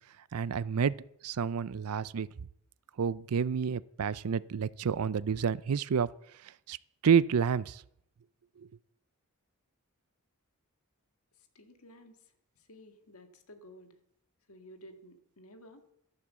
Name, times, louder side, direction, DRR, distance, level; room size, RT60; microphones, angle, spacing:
voice 1, 0.3-2.3 3.0-6.1 6.7-6.8 7.0-7.8, right 6 dB, 80° right, 19 dB, 0.5 m, -29 dB
voice 2, 11.3-14.0 14.5-15.8, equal, 70° left, 7 dB, 1.8 m, -54 dB
12.0 x 10.5 x 7.4 m, 0.75 s
head